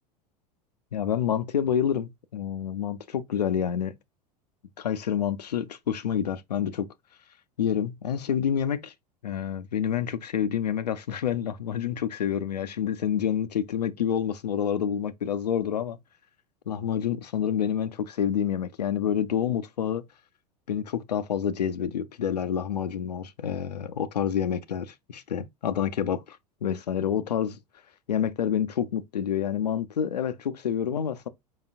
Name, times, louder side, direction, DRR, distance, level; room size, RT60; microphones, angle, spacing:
voice 1, 0.9-3.9 4.8-6.9 7.6-8.9 9.2-16.0 16.7-20.0 20.7-27.6 28.1-31.3, left 8 dB, 80° left, 0.4 m, -28 dB
4.9 x 4.0 x 2.4 m
figure-of-eight pair, 80°, 21 cm